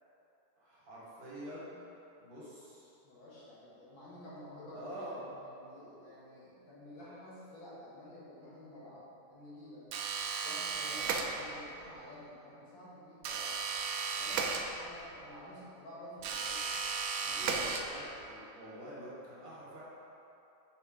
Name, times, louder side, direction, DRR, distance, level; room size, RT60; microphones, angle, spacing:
voice 1, 0.6-1.8 2.2-3.0 4.7-5.2 17.3-19.8, right 1 dB, 50° right, -8 dB, 1.9 m, -46 dB
voice 2, 3.0-9.8 10.4-13.5 14.1-16.8 17.1-17.5, left 1 dB, 85° left, -8 dB, 2.3 m, -51 dB
sound 1, 9.9-11.7 13.2-15.1 16.2-18.3, right 5 dB, 75° right, 0.8 m, -35 dB
6.6 x 5.0 x 3.7 m, 2.9 s
omnidirectional pair, 2.0 m